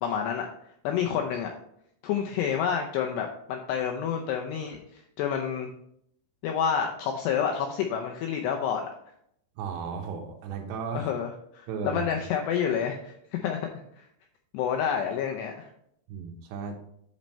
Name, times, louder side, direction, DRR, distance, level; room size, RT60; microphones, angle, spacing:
voice 1, 0.0-0.5 0.8-1.5 2.0-5.7 6.4-8.8 10.9-13.6 14.0-14.1 14.5-15.7, left 8 dB, 80° left, 2 dB, 2.5 m, -29 dB
voice 2, 9.6-11.1 11.7-12.1 16.1-16.8, right 6 dB, 75° right, 3 dB, 3.0 m, -35 dB
9.5 x 5.3 x 4.3 m, 0.73 s
omnidirectional pair, 5.5 m